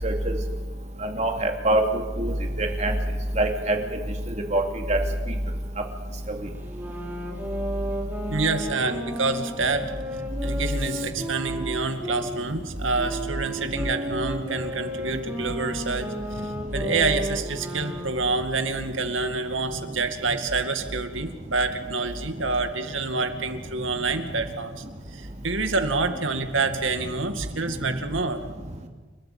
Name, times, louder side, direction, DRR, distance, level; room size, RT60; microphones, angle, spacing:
voice 1, 0.0-0.3 1.0-1.8 2.2-2.9 3.4-3.8 4.5-4.6 4.9-5.0, right 1 dB, 35° right, 3 dB, 2.9 m, -23 dB
sound 1, 6.6-12.3 13.0-18.3, equal, 10° right, 3.9 m, -33 dB
voice 2, 8.3-9.9 10.1-24.8 25.1-28.4, right 3 dB, 80° right, 7 dB, 2.2 m, -27 dB
29.5 x 13.0 x 8.8 m, 1.3 s
head